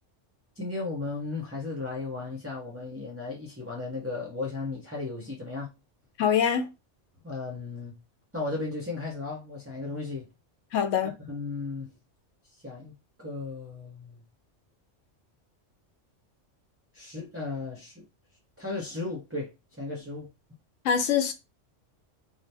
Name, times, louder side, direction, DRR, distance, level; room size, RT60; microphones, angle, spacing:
voice 1, 0.6-5.7 7.2-7.9 8.3-10.3 11.3-11.9 12.6-14.2 16.9-18.1 18.6-19.5 19.8-20.3, left 3 dB, 20° right, 0.4 m, -35 dB
voice 2, 6.2-6.7 10.7-11.1 20.8-21.3, left 8 dB, 80° left, 0.9 m, -24 dB
2.8 x 2.0 x 3.2 m
omnidirectional pair, 1.3 m